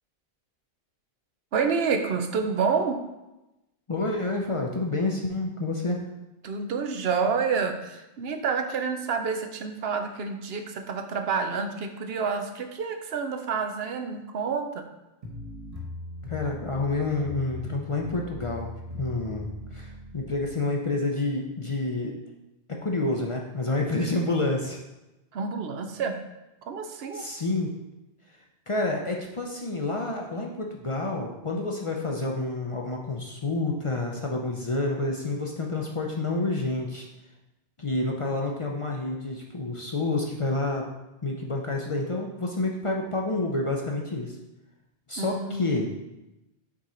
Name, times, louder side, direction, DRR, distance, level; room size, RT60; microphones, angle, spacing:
voice 1, 1.5-3.0 6.4-14.9 25.3-26.2 26.7-27.2 45.2-45.8, right 5 dB, 75° right, 6 dB, 0.9 m, -28 dB
voice 2, 3.9-6.0 16.3-18.7 19.0-22.1 22.7-24.8 27.1-27.7 28.7-37.1 37.8-40.8 41.2-44.4 45.1-45.9, left 2 dB, 40° left, 0 dB, 0.5 m, -29 dB
sound 1, 15.2-20.5, left 2 dB, 35° right, 1.1 m, -39 dB
6.0 x 3.8 x 4.3 m, 0.97 s
omnidirectional pair, 1.1 m